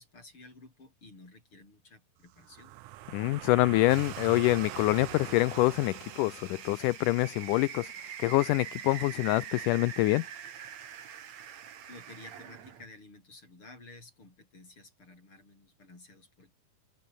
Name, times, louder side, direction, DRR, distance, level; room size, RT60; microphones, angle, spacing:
voice 1, 0.0-2.8 11.9-16.5, left 2 dB, 35° left, 7.3 m, -53 dB
sound 1, 2.3-7.1, right 16 dB, 70° right, 1.9 m, -43 dB
voice 2, 3.1-7.9 8.2-10.3, left 19 dB, 80° left, 2.0 m, -26 dB
sound 2, 3.9-12.9, right 9 dB, 55° right, 3.0 m, -45 dB
omnidirectional pair, 4.0 m